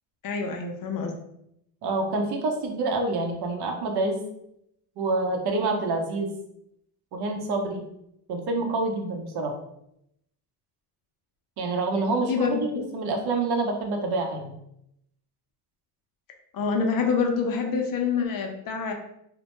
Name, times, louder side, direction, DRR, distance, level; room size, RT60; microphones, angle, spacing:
voice 1, 0.2-1.1 12.3-12.9 16.5-18.9, left 5 dB, 45° left, 3 dB, 0.5 m, -26 dB
voice 2, 1.8-4.2 5.0-6.3 7.1-7.8 8.3-9.5 11.6-12.7 12.9-14.5, right 3 dB, 55° right, 2 dB, 0.7 m, -27 dB
2.1 x 2.1 x 2.9 m, 0.77 s
supercardioid pair, 85°, 47 cm